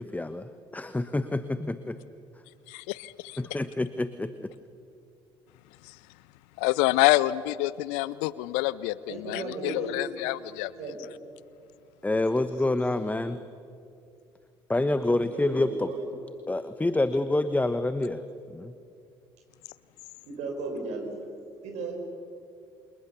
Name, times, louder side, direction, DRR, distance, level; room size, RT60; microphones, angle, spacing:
voice 1, 0.0-2.0 3.4-4.5 12.0-13.4 14.7-15.9 16.5-18.2 18.5-18.7, left 2 dB, 10° left, 12 dB, 1.2 m, -27 dB
voice 2, 2.7-3.4 5.8-6.0 6.6-10.7, left 18 dB, 70° left, 19 dB, 0.6 m, -27 dB
voice 3, 9.1-10.0 10.8-11.0 15.3-16.1 20.2-21.1 21.6-21.9, right 3 dB, 60° right, 1 dB, 5.8 m, -35 dB
28.5 x 27.5 x 6.9 m, 2.5 s
figure-of-eight pair, 55°, 13 cm